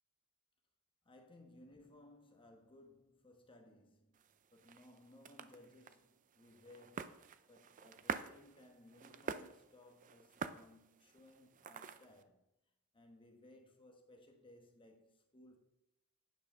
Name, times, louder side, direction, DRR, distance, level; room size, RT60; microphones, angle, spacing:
voice 1, 1.0-4.2 4.5-12.4 12.9-15.6, left 1 dB, 25° left, 1.1 m, -62 dB
sound 1, 4.1-12.2, right 6 dB, 35° right, 0.4 m, -48 dB
9.2 x 5.6 x 5.4 m
head